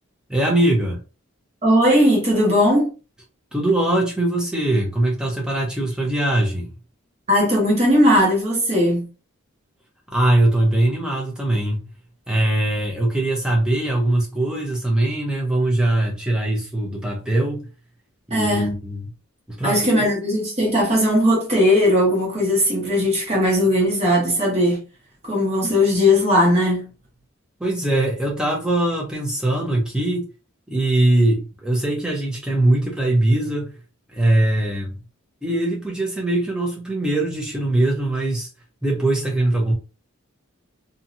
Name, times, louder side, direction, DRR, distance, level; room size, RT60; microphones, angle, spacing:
voice 1, 0.3-1.0 3.5-6.7 10.1-11.8 12.3-17.7 18.3-19.1 19.5-20.0 27.6-30.2 30.7-33.7 34.1-35.0 35.4-38.5 38.8-39.7, right 1 dB, 5° right, 0.8 m, -21 dB
voice 2, 1.6-2.9 7.3-9.1 18.3-18.8 19.6-24.8 25.2-26.9, left 1 dB, 30° right, 1.3 m, -18 dB
2.8 x 2.7 x 2.5 m
head